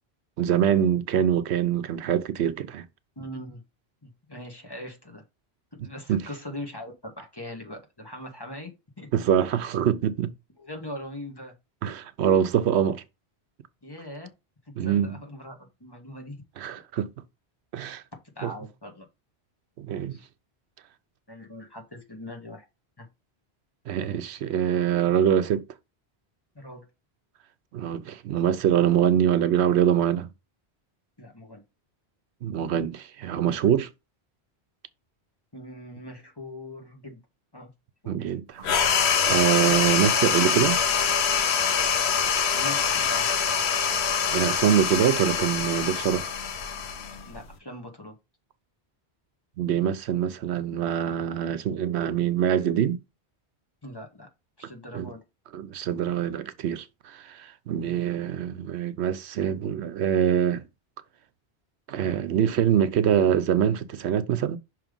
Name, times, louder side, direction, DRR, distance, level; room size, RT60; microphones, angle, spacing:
voice 1, 0.4-2.8 6.1-6.2 9.1-10.3 11.8-13.0 14.8-15.1 16.6-17.1 17.7-18.0 18.4-18.5 19.8-20.2 23.9-25.6 27.7-30.3 32.4-33.9 38.1-40.8 44.3-46.3 49.6-53.0 54.9-55.1 55.5-60.6 61.9-64.6, right 9 dB, 85° right, 0.9 m, -24 dB
voice 2, 3.1-3.6 4.0-5.2 5.8-9.1 10.6-11.5 13.8-14.3 14.8-16.4 18.3-19.1 20.0-20.2 21.3-22.7 23.0-23.1 26.5-26.9 31.2-31.6 35.5-37.2 37.5-37.7 38.0-38.2 42.5-43.3 47.2-48.1 53.8-54.3 54.6-55.2 57.8-58.0, left 1 dB, 20° left, 1.7 m, -41 dB
sound 1, 38.6-47.5, left 6 dB, 80° left, 1.1 m, -24 dB
6.0 x 3.3 x 5.2 m
omnidirectional pair, 1.1 m